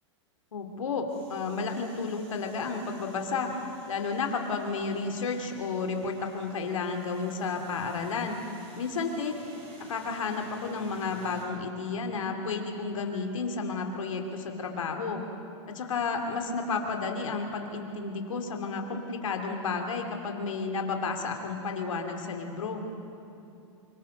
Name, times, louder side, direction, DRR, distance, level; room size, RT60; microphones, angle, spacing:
voice 1, 0.5-3.5 3.9-8.4 8.8-9.4 9.9-15.2 15.7-22.8, left 4 dB, 85° left, 3 dB, 2.9 m, -32 dB
sound 1, 1.1-11.5, right 3 dB, 35° right, 6.7 m, -55 dB
25.0 x 24.0 x 5.3 m, 2.7 s
hypercardioid pair, 120°, 16 cm